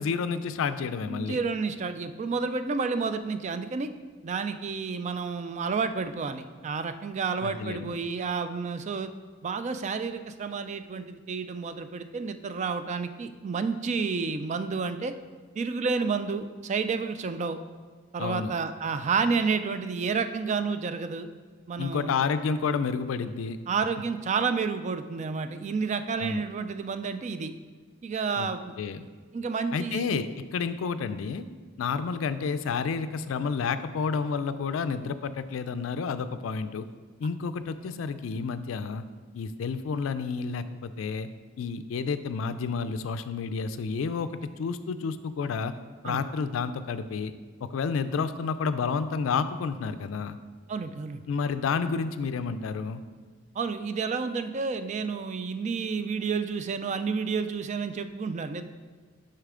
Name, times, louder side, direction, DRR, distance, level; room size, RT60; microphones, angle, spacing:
voice 1, 0.0-1.4 7.4-7.9 18.2-18.5 21.8-23.6 26.2-26.5 28.4-28.5 28.8-29.1 29.7-31.4 31.8-36.9 37.2-39.0 39.3-41.3 41.6-45.7 46.0-47.3 47.6-50.4 51.3-53.0, left 5 dB, 80° left, 11 dB, 0.4 m, -30 dB
voice 2, 1.1-3.9 4.2-9.1 9.4-15.1 15.6-17.6 18.1-21.3 21.7-22.2 23.7-27.5 28.0-28.7 29.3-30.1 46.0-46.2 50.7-51.2 53.6-58.6, right 5 dB, 35° right, 10 dB, 0.3 m, -30 dB
6.6 x 5.7 x 3.7 m, 1.5 s
head